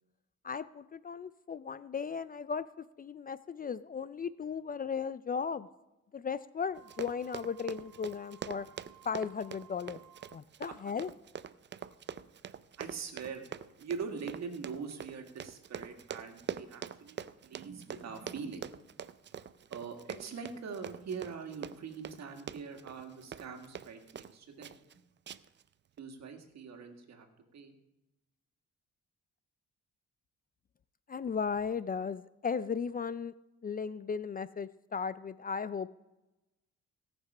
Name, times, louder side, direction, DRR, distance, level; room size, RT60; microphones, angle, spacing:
voice 1, 0.4-5.7 6.1-8.7 9.0-10.0 10.3-11.1 31.1-33.3 33.6-35.9, left 6 dB, 30° left, 15 dB, 0.4 m, -36 dB
Wind instrument woodwind instrument, 6.7-10.5, right 11 dB, 75° right, 1.0 m, -59 dB
Run, 6.8-24.3 24.6-24.9 25.3-25.6 26.0-26.1, right 8 dB, 40° right, 0.5 m, -44 dB
voice 2, 12.8-13.5 13.8-18.6 19.7-24.8 26.0-27.3 27.5-27.7, right 5 dB, 60° right, 5 dB, 1.9 m, -42 dB
17.5 x 6.0 x 5.4 m, 0.98 s
cardioid pair, 90°, 30 cm